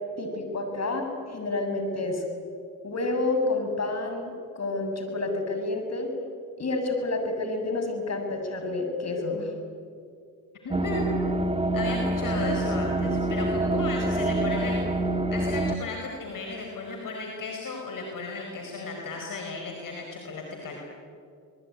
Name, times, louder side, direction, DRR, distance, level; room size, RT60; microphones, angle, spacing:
voice 1, 0.2-2.2 2.8-6.1 6.6-9.5, left 2 dB, 45° left, 4 dB, 7.1 m, -29 dB
voice 2, 10.6-11.1 11.7-14.8 15.3-20.7, left 3 dB, 60° left, 1 dB, 4.9 m, -35 dB
sound 1, 10.7-15.8, right 2 dB, 15° right, 1.7 m, -26 dB
25.5 x 20.5 x 9.9 m, 2.3 s
supercardioid pair, 65°, 37 cm